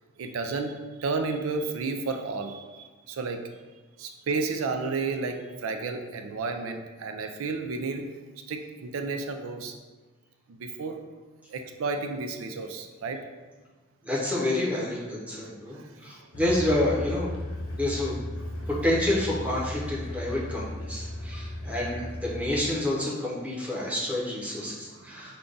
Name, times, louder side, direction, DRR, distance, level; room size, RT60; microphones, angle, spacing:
voice 1, 0.2-3.4 4.0-8.1 8.5-9.7 10.5-11.0 11.5-13.2 15.7-16.3 17.7-17.8 18.6-18.7 24.9-25.3, right 4 dB, 90° right, 5 dB, 0.4 m, -32 dB
voice 2, 14.0-17.3 17.8-18.2 18.7-25.4, left 1 dB, 5° right, -5 dB, 0.8 m, -28 dB
sound 1, 16.3-22.6, left 1 dB, 85° left, 0.6 m, -35 dB
5.0 x 2.3 x 3.8 m, 1.3 s
head